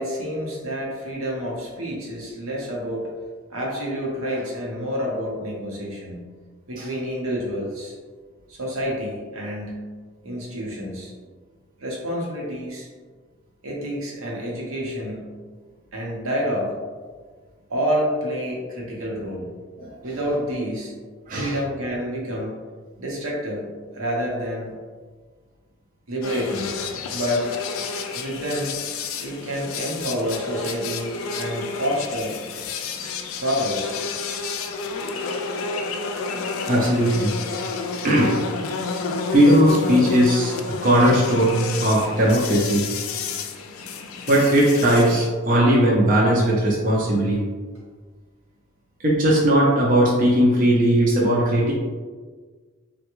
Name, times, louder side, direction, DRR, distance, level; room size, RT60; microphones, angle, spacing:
voice 1, 0.0-3.1 3.5-6.3 6.7-7.9 8.5-9.8 10.2-11.1 11.8-12.9 13.6-15.3 15.9-16.7 17.7-19.5 20.0-20.9 21.3-22.5 23.0-24.7 26.1-26.7 27.1-27.5 28.1-28.7 29.2-32.4 33.4-34.0, equal, 85° right, -3 dB, 0.8 m, -28 dB
sound 1, 26.2-45.3, left 4 dB, 75° left, 0.3 m, -30 dB
voice 2, 36.7-37.3 38.0-38.4 39.3-42.8 44.3-47.4 49.0-51.7, equal, 40° right, -5 dB, 0.5 m, -18 dB
3.3 x 2.2 x 3.0 m, 1.5 s
head